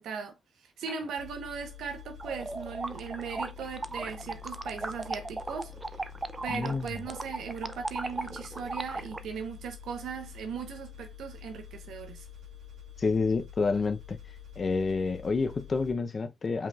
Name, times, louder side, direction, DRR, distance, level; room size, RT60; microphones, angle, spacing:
voice 1, 0.0-6.1 6.4-12.3, right 6 dB, 85° right, 1.0 m, -38 dB
sound 1, 1.2-15.9, left 8 dB, 70° right, 1.3 m, -47 dB
sound 2, 2.2-9.2, right 2 dB, 20° right, 0.5 m, -37 dB
voice 2, 6.5-6.9 13.0-14.2 14.6-16.7, left 4 dB, 35° left, 0.6 m, -28 dB
5.1 x 3.5 x 2.4 m
cardioid pair, 125°, 0 cm